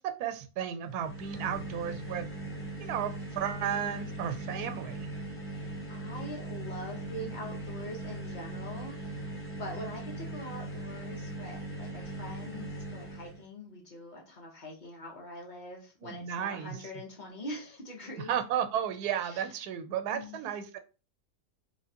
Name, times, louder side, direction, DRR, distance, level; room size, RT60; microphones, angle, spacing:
voice 1, 0.2-2.3 2.8-5.1 16.0-16.8 18.3-20.8, right 9 dB, 85° right, 9 dB, 1.1 m, -33 dB
sound 1, 0.8-13.4, right 1 dB, 15° left, 0.4 m, -40 dB
voice 2, 5.9-9.2 9.6-18.4 19.2-19.5 20.1-20.5, left 1 dB, 35° left, -1 dB, 1.0 m, -43 dB
3.3 x 3.0 x 2.8 m, 0.33 s
omnidirectional pair, 1.6 m